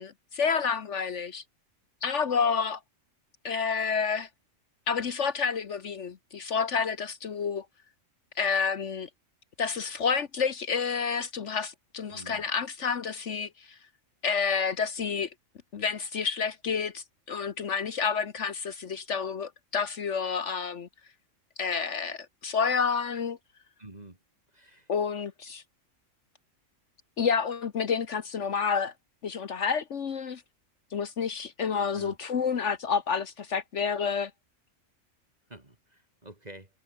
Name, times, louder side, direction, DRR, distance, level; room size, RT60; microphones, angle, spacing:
voice 1, 0.0-1.4 2.0-2.8 3.4-4.3 4.9-7.6 8.4-9.1 9.6-13.5 14.2-15.3 15.7-20.9 21.6-23.4 24.9-25.6 27.2-28.9 29.2-30.4 30.9-34.3, left 6 dB, 65° left, 1.4 m, -29 dB
voice 2, 12.1-12.4 23.8-24.2 24.5-24.9 31.9-32.2 35.5-36.7, right 1 dB, 30° right, 3.0 m, -48 dB
omnidirectional pair, 1.4 m